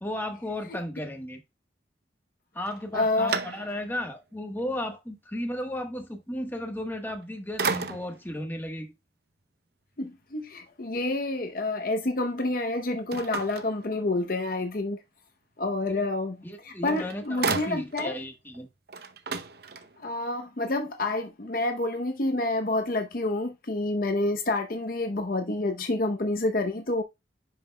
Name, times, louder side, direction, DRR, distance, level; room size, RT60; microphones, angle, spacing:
voice 1, 0.0-1.4 2.5-8.9 15.9-16.0 16.4-18.7, left 1 dB, 10° left, 1.2 m, -34 dB
sound 1, 2.6-4.1 4.6-4.7 6.9-7.2 7.6-8.3 13.1-14.4 16.5-16.6 16.9-18.2 18.5-18.6 18.9-20.2, right 4 dB, 55° right, 0.7 m, -33 dB
voice 2, 2.9-3.4 10.0-15.0 15.6-18.1 20.0-27.0, left 2 dB, 50° left, 0.7 m, -28 dB
10.5 x 5.6 x 2.2 m
head